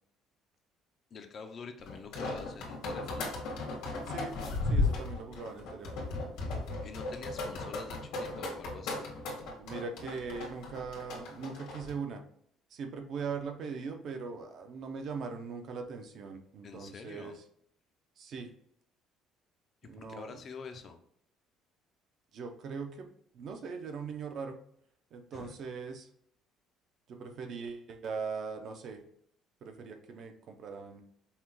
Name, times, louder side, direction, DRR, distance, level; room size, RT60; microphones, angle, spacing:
voice 1, 1.1-3.3 6.8-9.0 16.6-17.4 19.8-21.0 25.3-25.6, left 5 dB, 30° left, 6 dB, 0.4 m, -46 dB
sound 1, 1.9-11.9, left 3 dB, 85° left, 1.6 m, -35 dB
voice 2, 4.1-4.4 4.6-6.1 9.4-12.2 12.7-17.4 18.2-18.5 19.8-20.4 22.3-23.1 23.3-24.6 25.1-26.1 27.1-29.0 29.6-31.0, right 5 dB, 45° right, 5 dB, 0.6 m, -40 dB
5.5 x 2.2 x 3.1 m, 0.68 s
cardioid pair, 170°, 0 cm